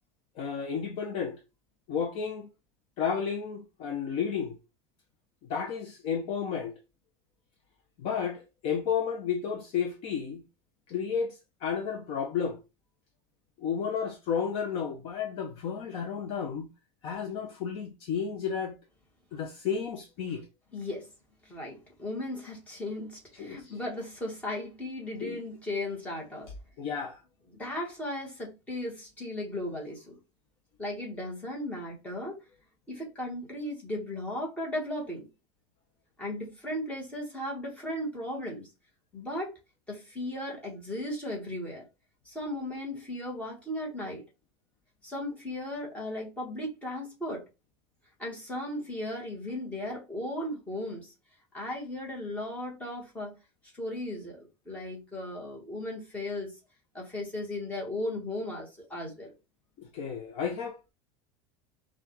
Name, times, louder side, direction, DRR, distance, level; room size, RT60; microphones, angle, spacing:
voice 1, 0.4-1.4 1.9-2.5 3.0-4.6 5.5-6.8 8.0-10.4 10.9-12.6 13.6-16.7 17.0-18.8 19.3-20.4 23.4-23.8 25.2-25.4 26.8-27.2 59.8-60.9, left 7 dB, 40° left, 0.7 m, -32 dB
voice 2, 20.7-21.1 21.4-26.5 27.5-30.2 30.8-32.4 32.9-35.3 36.2-38.7 39.1-39.6 39.9-41.9 42.2-44.2 45.0-47.4 48.2-51.1 51.5-53.4 53.7-56.6 56.9-59.3, left 1 dB, 10° left, 1.4 m, -36 dB
5.6 x 2.4 x 3.0 m
supercardioid pair, 165°, 14 cm